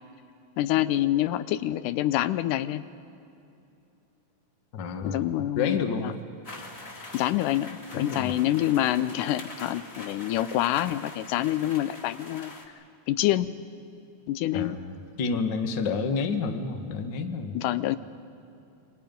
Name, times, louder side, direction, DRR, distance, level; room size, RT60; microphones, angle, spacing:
voice 1, 0.6-2.8 5.0-6.1 7.1-12.5 13.1-13.5 14.3-14.8 17.6-18.0, left 13 dB, 85° left, 13 dB, 2.2 m, -26 dB
voice 2, 4.7-6.2 7.9-8.4 14.5-17.6, left 5 dB, 45° left, 6 dB, 1.6 m, -30 dB
sound 1, 6.4-12.7, left 2 dB, 30° left, 2.1 m, -44 dB
29.0 x 24.0 x 5.3 m, 2.7 s
omnidirectional pair, 3.6 m